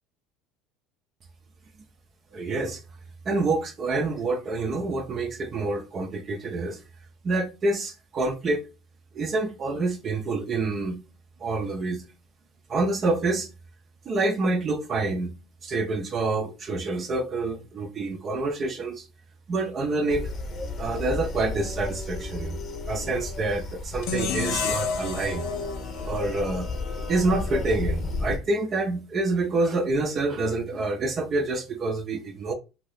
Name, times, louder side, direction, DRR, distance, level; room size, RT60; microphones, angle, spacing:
voice 1, 2.3-2.8 3.2-6.8 7.2-8.7 9.1-11.0 11.4-12.0 12.7-13.5 14.1-15.3 15.6-19.1 19.5-20.3 20.8-22.6 22.9-25.5 26.0-26.7 27.1-32.5, right 2 dB, 40° right, 0.5 m, -27 dB
sound 1, 20.1-28.4, left 3 dB, 40° left, 0.8 m, -33 dB
sound 2, 24.0-27.2, left 5 dB, 70° left, 0.6 m, -31 dB
2.7 x 2.6 x 3.3 m
hypercardioid pair, 85°, 0 cm